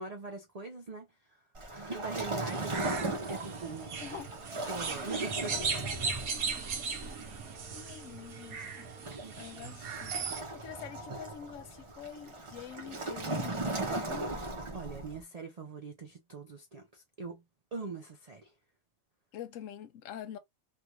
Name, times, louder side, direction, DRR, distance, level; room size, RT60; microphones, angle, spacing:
voice 1, 0.0-1.4 1.7-3.9 4.7-5.5 9.2-9.3 14.7-17.4 17.7-18.5, right 3 dB, 55° right, 0.4 m, -42 dB
Waves surf, 1.5-15.2, right 2 dB, 30° right, 0.7 m, -38 dB
sound 1, 2.4-10.4, right 5 dB, 85° right, 1.3 m, -38 dB
voice 2, 2.8-3.2 4.0-4.3 5.5-6.6 7.7-8.9 9.4-14.3 19.3-20.4, left 9 dB, 70° left, 1.0 m, -46 dB
3.3 x 2.4 x 2.8 m
omnidirectional pair, 1.5 m